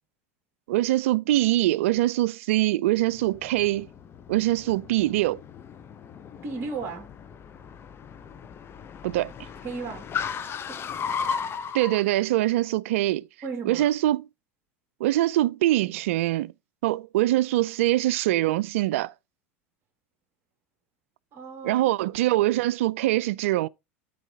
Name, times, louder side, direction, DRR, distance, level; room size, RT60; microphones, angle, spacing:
voice 1, 0.7-3.9 4.3-5.4 9.0-9.5 11.7-13.2 13.7-14.3 15.0-16.5 16.8-19.1 21.6-23.7, right 16 dB, 75° right, 0.4 m, -23 dB
Car, 3.1-12.0, left 6 dB, 35° left, 0.8 m, -36 dB
voice 2, 6.4-7.1 9.6-10.8 13.4-13.9 21.3-21.8, right 4 dB, 40° right, 1.9 m, -36 dB
12.5 x 4.6 x 2.7 m
hypercardioid pair, 95°, 7 cm